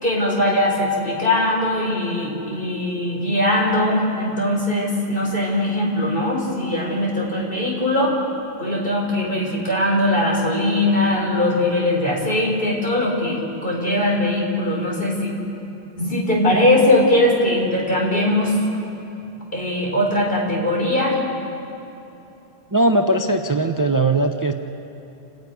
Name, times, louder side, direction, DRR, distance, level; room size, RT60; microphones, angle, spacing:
voice 1, 0.0-8.2 8.6-15.3 16.0-18.5 19.5-21.2, left 1 dB, 60° left, -2 dB, 4.6 m, -20 dB
voice 2, 22.7-24.5, right 2 dB, 20° right, 5 dB, 0.7 m, -19 dB
29.0 x 10.5 x 9.3 m, 3.0 s
omnidirectional pair, 1.1 m